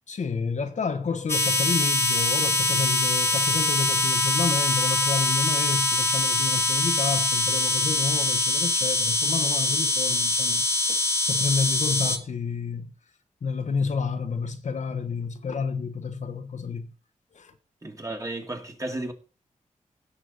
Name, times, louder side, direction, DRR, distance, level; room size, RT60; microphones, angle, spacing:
voice 1, 0.1-12.9 13.4-16.9 17.3-17.5, left 5 dB, 65° left, 1.2 m, -30 dB
sound 1, 1.3-12.2, left 2 dB, 20° left, 1.7 m, -24 dB
voice 2, 17.8-19.1, right 2 dB, 25° right, 2.1 m, -33 dB
17.0 x 6.6 x 4.1 m
wide cardioid pair, 90°, 13 cm